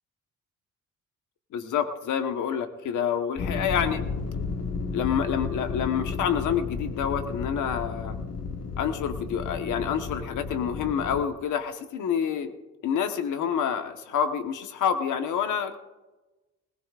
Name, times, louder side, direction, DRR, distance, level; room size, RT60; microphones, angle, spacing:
voice 1, 1.5-4.0 4.9-8.2 8.8-12.5 12.8-15.8, left 8 dB, 80° left, 7 dB, 1.3 m, -28 dB
sound 1, 3.4-11.3, left 4 dB, 55° left, 1.4 m, -33 dB
20.0 x 18.5 x 2.5 m, 1.1 s
cardioid pair, 90°, 30 cm